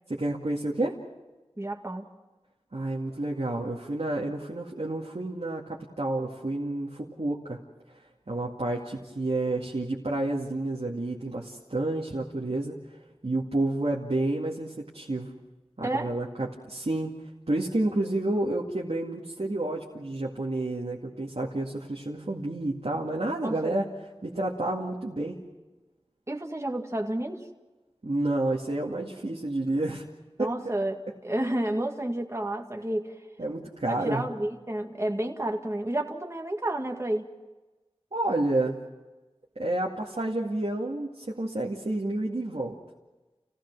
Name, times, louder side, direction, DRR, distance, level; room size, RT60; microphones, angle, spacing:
voice 1, 0.1-1.0 2.7-7.6 8.3-12.8 13.2-15.3 15.8-17.2 17.5-23.9 24.2-25.4 28.0-30.1 30.4-30.5 33.4-34.3 38.1-38.8 39.6-42.8, right 2 dB, 75° right, -3 dB, 2.2 m, -30 dB
voice 2, 1.6-2.1 15.8-16.1 23.4-23.8 26.3-27.4 30.4-33.2 33.9-37.3, right 1 dB, 25° right, 2 dB, 1.9 m, -30 dB
29.0 x 17.0 x 6.2 m, 1.1 s
wide cardioid pair, 45°, 11 cm